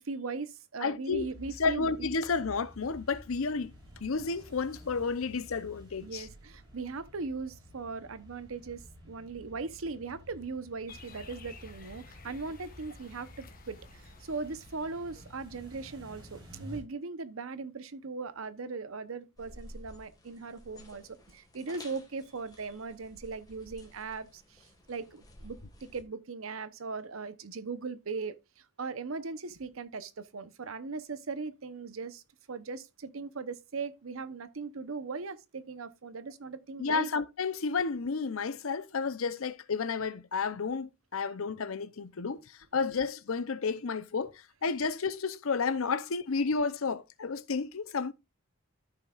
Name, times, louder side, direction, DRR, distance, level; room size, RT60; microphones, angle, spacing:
voice 1, 0.0-2.1 6.0-32.2 32.5-37.1, right 4 dB, 80° right, 0.8 m, -39 dB
voice 2, 0.8-1.3 1.6-3.7 4.0-6.3 36.8-44.3 44.6-48.1, left 4 dB, 85° left, 0.7 m, -31 dB
sound 1, 1.1-16.8, left 1 dB, 25° right, 5.9 m, -52 dB
sound 2, 10.9-16.4, left 3 dB, 45° left, 1.4 m, -53 dB
sound 3, 19.4-26.0, left 1 dB, 20° left, 1.7 m, -53 dB
13.5 x 5.8 x 2.4 m
head